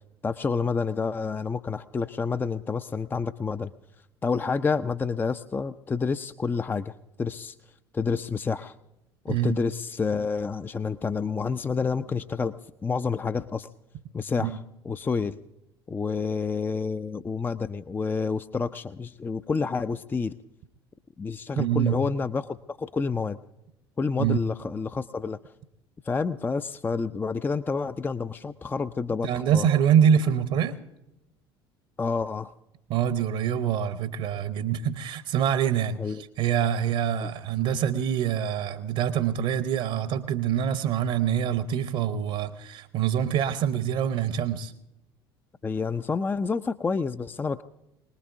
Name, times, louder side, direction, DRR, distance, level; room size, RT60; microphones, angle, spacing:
voice 1, 0.2-3.7 4.2-7.5 7.9-8.7 9.2-12.5 12.8-13.7 14.1-14.6 14.8-15.4 15.9-20.3 21.2-23.4 24.0-25.5 26.0-29.7 32.0-32.5 36.0-36.2 37.2-37.3 45.6-47.6, left 5 dB, 15° left, 12 dB, 0.5 m, -29 dB
voice 2, 9.3-9.6 14.4-14.6 21.6-22.0 24.2-24.4 29.2-30.8 32.9-44.7, right 9 dB, 50° right, 12 dB, 0.9 m, -25 dB
25.0 x 19.5 x 2.7 m, 0.91 s
figure-of-eight pair, 65°, 13 cm